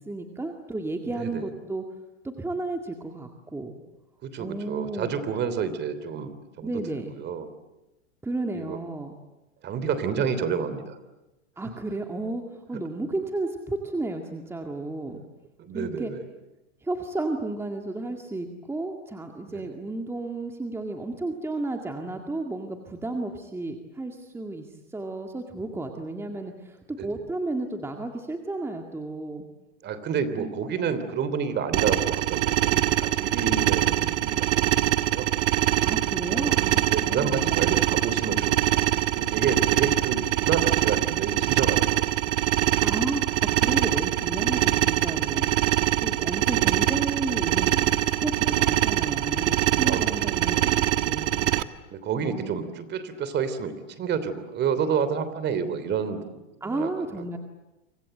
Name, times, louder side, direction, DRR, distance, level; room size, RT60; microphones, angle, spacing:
voice 1, 0.0-1.8 2.2-3.7 4.4-5.1 6.6-7.1 8.2-9.1 11.6-15.2 15.7-16.1 16.8-29.4 30.4-30.5 35.8-37.8 42.8-51.5 52.2-52.5 56.6-57.4, right 2 dB, 5° right, 4 dB, 2.0 m, -33 dB
voice 2, 1.2-1.5 4.2-7.5 8.5-8.8 9.6-11.0 11.6-11.7 15.6-16.2 19.5-19.6 27.0-27.1 29.8-35.3 36.3-36.5 36.9-38.6 38.9-42.1 46.2-46.5 49.8-50.6 51.9-56.2 56.6-57.0, right 6 dB, 30° right, 12 dB, 3.2 m, -30 dB
sound 1, 31.7-51.6, right 14 dB, 70° right, 1.4 m, -24 dB
28.5 x 25.5 x 7.9 m, 0.98 s
supercardioid pair, 135°, 37 cm